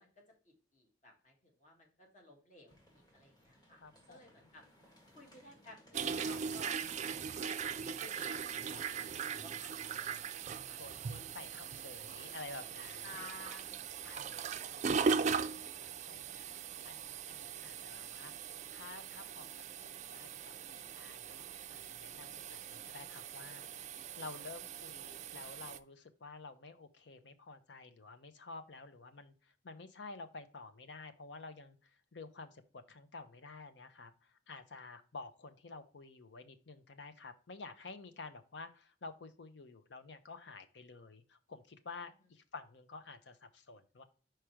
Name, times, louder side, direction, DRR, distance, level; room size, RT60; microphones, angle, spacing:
voice 1, 0.0-4.6 5.1-6.8 7.5-10.8 13.0-14.9, left 1 dB, 40° left, 1 dB, 1.7 m, -55 dB
sound 1, 2.7-17.4, equal, 25° left, 1.8 m, -64 dB
voice 2, 3.8-4.5 10.8-13.3 14.0-14.7 15.0-16.6 16.8-18.3 18.7-23.9 24.2-44.0, left 3 dB, 75° left, 9 dB, 0.7 m, -51 dB
sound 2, 5.9-25.8, right 6 dB, 40° right, 0.3 m, -40 dB
5.0 x 4.5 x 4.5 m, 0.39 s
head